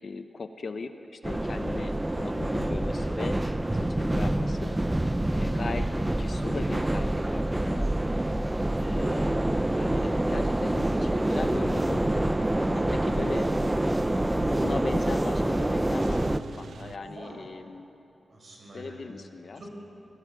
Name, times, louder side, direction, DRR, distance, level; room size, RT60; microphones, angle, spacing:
voice 1, 0.0-3.4 3.7-4.7 5.3-7.9 8.4-9.4 9.8-13.5 14.2-17.9 18.7-19.6, left 4 dB, 45° left, 8 dB, 0.9 m, -39 dB
sound 1, 1.2-16.4, right 1 dB, 10° right, 0.5 m, -26 dB
Car / Engine starting / Idling, 11.2-17.0, right 5 dB, 70° right, 0.6 m, -47 dB
voice 2, 16.9-17.4 18.3-19.1 19.6-19.7, right 1 dB, 45° right, -1 dB, 5.4 m, -45 dB
19.0 x 17.0 x 9.0 m, 2.8 s
wide cardioid pair, 170°, 0 cm